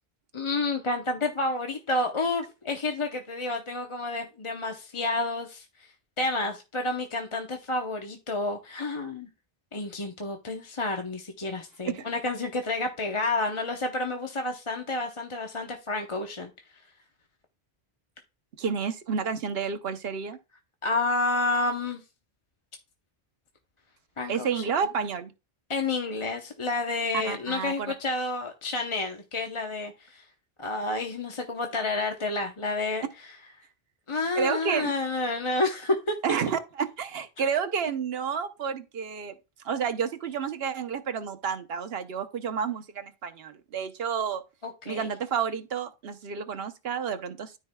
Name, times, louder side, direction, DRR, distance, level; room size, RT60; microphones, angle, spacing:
voice 1, 0.3-5.9 6.2-9.3 9.7-16.5 20.8-22.0 24.2-24.8 25.7-30.2 30.6-33.3 34.1-36.1 44.6-45.1, left 2 dB, 30° left, 0.8 m, -30 dB
voice 2, 18.6-20.4 24.3-25.3 27.1-27.9 34.4-34.9 36.2-39.3 39.6-44.4 44.9-47.5, right 6 dB, 70° right, 1.0 m, -30 dB
13.0 x 4.7 x 2.2 m
omnidirectional pair, 1.1 m